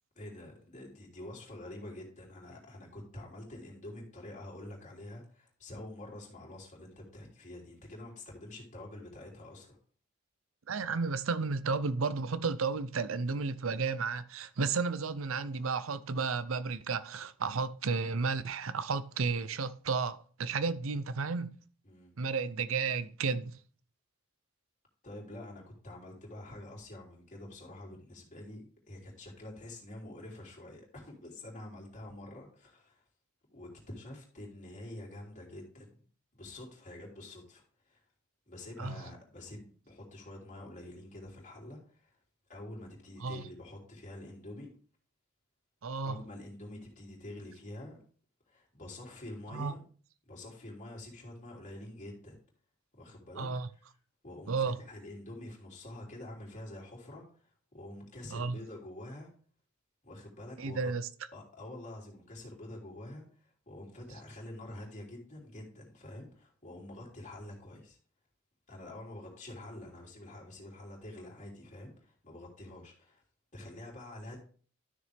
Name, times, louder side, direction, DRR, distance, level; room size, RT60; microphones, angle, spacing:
voice 1, 0.1-9.8 21.8-22.1 25.0-33.0 33.5-36.0 36.3-38.0 38.5-42.2 42.5-44.7 46.0-48.0 48.5-49.8 50.3-52.4 53.0-53.8 54.2-59.3 60.0-60.9 61.3-68.0 68.7-73.2 73.5-74.4, left 1 dB, 35° left, 3.1 m, -47 dB
voice 2, 10.7-21.5 22.2-23.5 38.8-39.0 43.2-43.4 45.8-46.1 49.5-49.7 53.4-53.7 54.5-54.8 58.3-58.6 60.6-61.1, right 4 dB, 75° right, 0.6 m, -32 dB
12.5 x 6.6 x 3.5 m
head